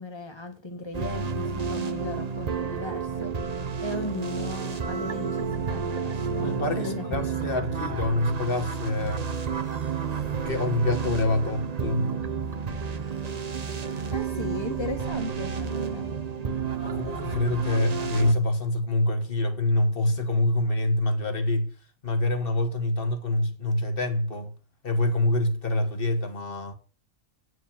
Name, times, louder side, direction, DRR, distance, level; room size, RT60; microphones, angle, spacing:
voice 1, 0.0-3.4 3.8-6.5 6.8-7.1 14.1-16.1, left 2 dB, 20° left, 1.6 m, -37 dB
sound 1, 0.9-18.3, right 6 dB, 35° right, 0.7 m, -31 dB
voice 2, 6.4-9.3 10.4-12.1 16.8-21.7 22.0-24.5 24.8-26.7, left 1 dB, 45° left, 1.4 m, -26 dB
9.2 x 4.7 x 7.1 m
omnidirectional pair, 1.4 m